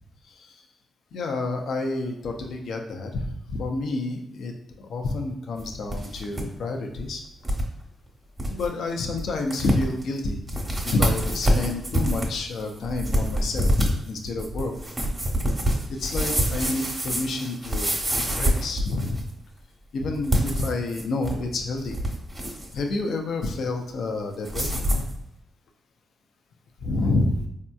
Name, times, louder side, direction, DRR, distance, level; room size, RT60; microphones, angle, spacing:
voice 1, 1.1-4.5 4.9-7.2 8.5-14.7 16.0-19.2 19.9-22.0 22.7-25.0 26.8-27.5, left 2 dB, 75° left, 3 dB, 0.5 m, -29 dB
sound 1, 5.6-6.4 6.8-6.9 7.4-7.7 8.1-8.2 8.4-8.7 9.2-9.3 9.5-10.0 10.5-19.3 20.2-21.4 21.8-22.7 24.4-25.1, equal, 25° right, 1.1 m, -26 dB
4.1 x 2.7 x 2.3 m, 0.82 s
cardioid pair, 60°, 0 cm